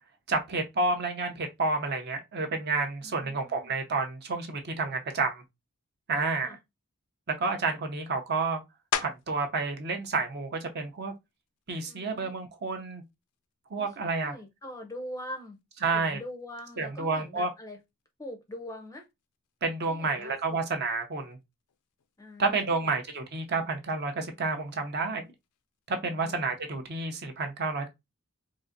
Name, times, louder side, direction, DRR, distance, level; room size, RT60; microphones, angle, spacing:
voice 1, 0.3-5.4 6.1-6.5 7.3-8.6 9.0-11.1 11.7-13.0 13.7-14.4 15.8-16.2 16.8-17.5 19.6-21.4 22.4-25.2 25.9-27.9, right 3 dB, 45° right, 0.6 m, -30 dB
voice 2, 3.0-3.7 6.4-6.6 11.9-12.4 13.8-15.6 15.9-17.8 18.2-19.1 19.9-20.6 22.2-22.9 26.0-26.3, left 1 dB, 15° left, 0.4 m, -43 dB
sound 1, 8.9-9.5 10.1-14.5 15.0-20.2 20.5-26.1, left 9 dB, 90° left, 0.4 m, -43 dB
3.8 x 2.5 x 2.5 m
head